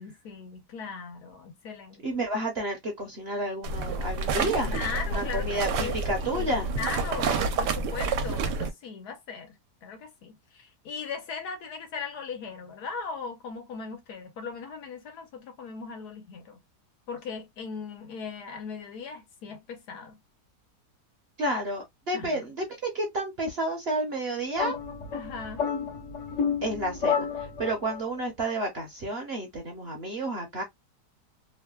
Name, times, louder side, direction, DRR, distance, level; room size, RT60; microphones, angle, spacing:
voice 1, 0.0-2.2 4.7-9.5 9.8-16.6 17.1-20.2 22.1-22.5 25.1-25.7, left 5 dB, 70° left, 1.4 m, -38 dB
voice 2, 2.0-4.7 5.1-6.7 21.4-24.8 26.6-30.6, right 1 dB, 50° right, 0.8 m, -31 dB
sound 1, 3.6-8.7, right 4 dB, 80° right, 1.2 m, -29 dB
sound 2, 24.6-28.0, left 6 dB, 55° left, 1.1 m, -30 dB
3.3 x 2.2 x 2.2 m
omnidirectional pair, 1.8 m